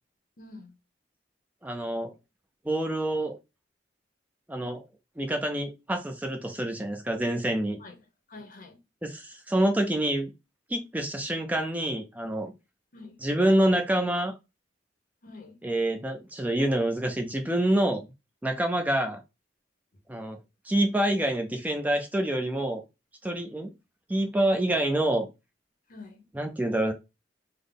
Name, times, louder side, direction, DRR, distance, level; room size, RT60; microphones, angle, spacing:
voice 1, 0.4-0.7 7.8-7.9 8.3-8.8 12.9-13.2 15.2-15.6 25.9-26.3, left 3 dB, 50° left, 0.8 m, -46 dB
voice 2, 1.6-2.1 2.7-3.4 4.5-4.8 5.2-7.8 9.0-10.3 10.7-12.5 13.2-14.3 15.6-18.0 18.4-19.2 20.1-20.4 20.7-22.8 23.2-23.7 24.1-25.3 26.4-26.9, right 1 dB, 10° right, 0.4 m, -27 dB
3.4 x 2.1 x 3.8 m
head